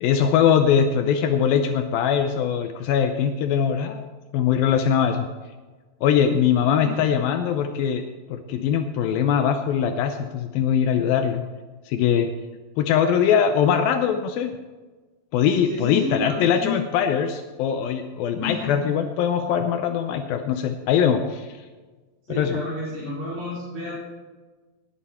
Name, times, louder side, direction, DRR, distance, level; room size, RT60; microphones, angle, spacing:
voice 1, 0.0-4.1 4.3-5.3 6.0-8.0 8.3-11.4 11.9-12.3 12.8-14.6 15.3-21.6 22.3-22.6, left 8 dB, 80° left, 7 dB, 2.4 m, -21 dB
voice 2, 15.7-16.8 18.4-18.8 22.3-23.9, left 3 dB, 35° right, -10 dB, 4.9 m, -30 dB
19.0 x 9.1 x 4.3 m, 1.3 s
omnidirectional pair, 4.4 m